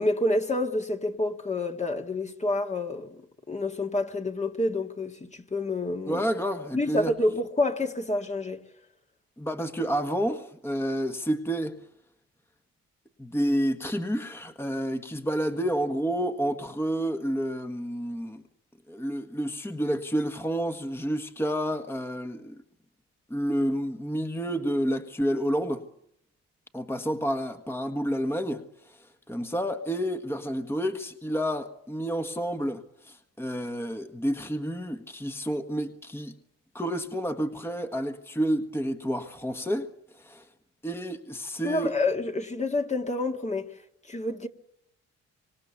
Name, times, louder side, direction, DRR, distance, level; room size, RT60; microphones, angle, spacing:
voice 1, 0.0-6.2 6.7-8.6 41.6-43.7 44.1-44.5, left 2 dB, 25° left, 1.8 m, -28 dB
voice 2, 6.1-7.1 9.4-11.8 13.2-18.4 18.9-22.6 23.3-25.9 26.7-36.3 36.7-39.9 40.1-40.5 40.8-42.0, equal, 10° left, 1.6 m, -30 dB
26.0 x 26.0 x 7.1 m
cardioid pair, 90°, 30 cm